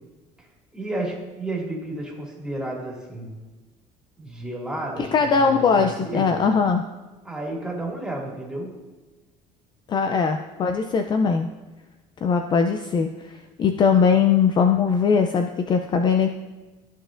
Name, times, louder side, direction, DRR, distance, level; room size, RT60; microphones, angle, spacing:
voice 1, 0.7-3.3 4.2-6.5 7.2-8.7, right 1 dB, 5° right, -3 dB, 2.2 m, -32 dB
voice 2, 5.0-6.9 9.9-11.5 12.2-16.3, left 5 dB, 35° left, 6 dB, 0.4 m, -20 dB
13.5 x 4.9 x 2.5 m, 1.2 s
cardioid pair, 120°, 13 cm